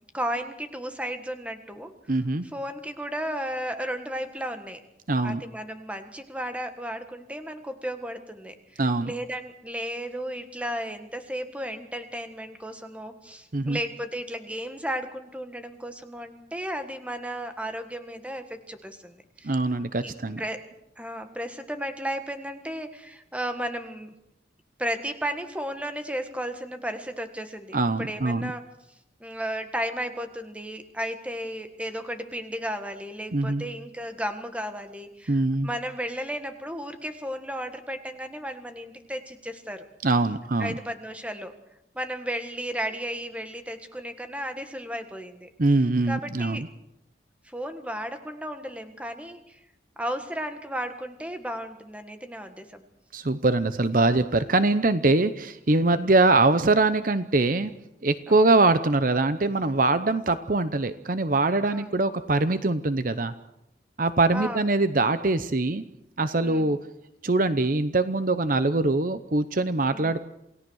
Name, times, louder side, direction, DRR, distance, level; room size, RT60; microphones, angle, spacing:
voice 1, 0.1-1.9 2.5-4.8 5.2-19.5 20.0-20.6 21.0-24.1 24.8-28.6 29.2-39.9 40.6-41.5 41.9-45.5 46.1-46.6 47.4-49.6 50.0-52.8 55.9-56.1 58.3-58.5 61.7-62.0 64.3-64.6 66.4-66.7 69.9-70.1, equal, 5° right, 7 dB, 1.5 m, -34 dB
voice 2, 2.1-2.5 5.1-5.4 8.8-9.1 13.5-13.8 19.4-20.4 27.7-28.5 33.3-33.6 35.3-35.7 40.0-40.8 45.6-46.7 53.1-57.7 58.0-63.3 64.0-65.8 66.2-66.8 67.2-70.2, right 2 dB, 45° right, 12 dB, 0.8 m, -23 dB
28.0 x 17.5 x 6.4 m, 0.85 s
head